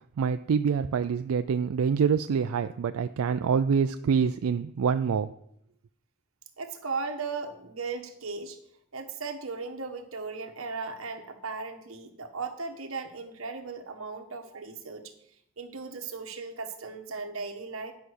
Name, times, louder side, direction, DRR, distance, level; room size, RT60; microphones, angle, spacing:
voice 1, 0.2-5.3, right 6 dB, 90° right, 10 dB, 0.4 m, -26 dB
voice 2, 6.6-8.6 8.9-15.1 15.6-17.9, right 4 dB, 70° right, 4 dB, 1.3 m, -37 dB
10.5 x 5.6 x 6.4 m, 0.75 s
head